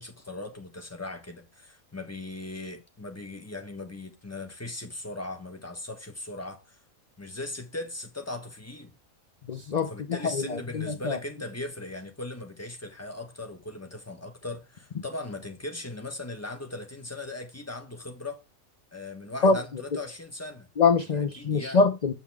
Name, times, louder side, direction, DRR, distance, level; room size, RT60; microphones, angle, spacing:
voice 1, 0.0-6.8 7.2-8.9 9.9-18.4 18.9-20.7 21.1-21.8, left 2 dB, 10° left, 1.4 m, -38 dB
voice 2, 9.5-9.9 10.2-11.2 19.4-19.6 20.8-22.1, left 4 dB, 35° left, 0.7 m, -24 dB
7.8 x 7.1 x 3.5 m
omnidirectional pair, 1.5 m